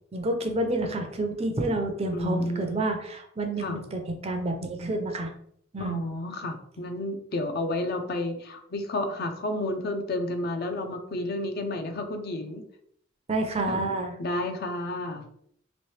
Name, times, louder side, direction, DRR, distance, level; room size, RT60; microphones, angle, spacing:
voice 1, 0.1-5.3 5.7-6.0 13.3-14.2, right 2 dB, 30° right, 4 dB, 0.5 m, -29 dB
voice 2, 2.1-2.8 3.6-3.8 5.8-12.6 13.7-13.8 14.2-15.3, left 1 dB, 50° left, 6 dB, 0.5 m, -31 dB
3.1 x 3.0 x 3.1 m, 0.68 s
head